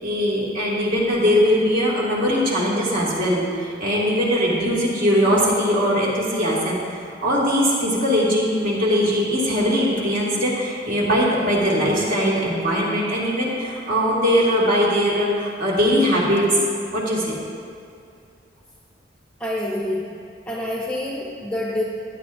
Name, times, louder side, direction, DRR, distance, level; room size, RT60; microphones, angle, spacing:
voice 1, 0.0-16.5 16.9-17.4, equal, 45° right, -6 dB, 2.4 m, -21 dB
voice 2, 19.4-20.1 20.5-21.8, left 1 dB, 5° left, -4 dB, 0.8 m, -27 dB
15.5 x 11.0 x 2.7 m, 2.4 s
head